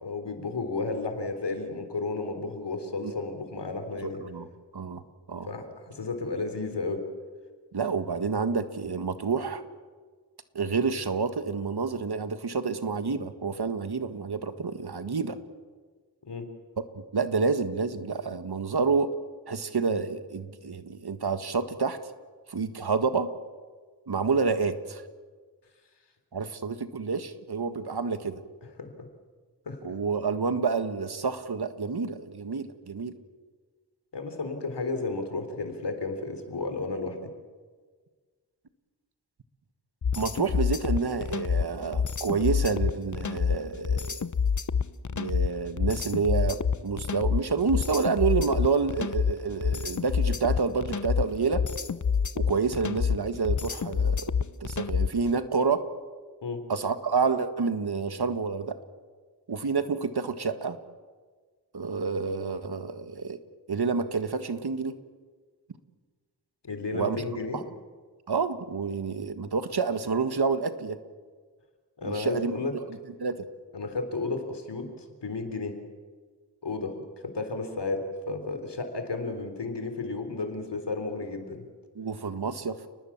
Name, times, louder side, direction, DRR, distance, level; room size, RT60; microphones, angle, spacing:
voice 1, 0.0-4.2 5.5-7.0 16.3-16.5 28.8-28.9 29.7-29.9 34.1-37.2 56.4-56.7 66.6-67.6 72.0-72.7 73.7-75.7 76.6-76.9 77.2-81.7, left 3 dB, 80° left, 7 dB, 3.7 m, -33 dB
voice 2, 4.0-4.5 4.7-5.0 5.3-5.5 7.7-9.6 10.6-15.4 17.0-19.1 19.5-22.0 22.5-23.3 24.1-25.0 26.3-28.4 29.8-33.1 40.2-44.3 45.1-51.6 52.4-54.3 54.6-55.8 56.7-58.8 59.5-60.8 61.7-63.4 63.7-64.9 66.9-67.2 67.5-67.6 68.3-71.0 72.0-72.7 73.2-73.5 82.0-82.8, right 5 dB, 70° right, 10 dB, 1.7 m, -28 dB
sound 1, 40.0-55.3, left 6 dB, 45° left, 0.9 m, -27 dB
30.0 x 20.0 x 7.3 m, 1.5 s
cardioid pair, 55°, 41 cm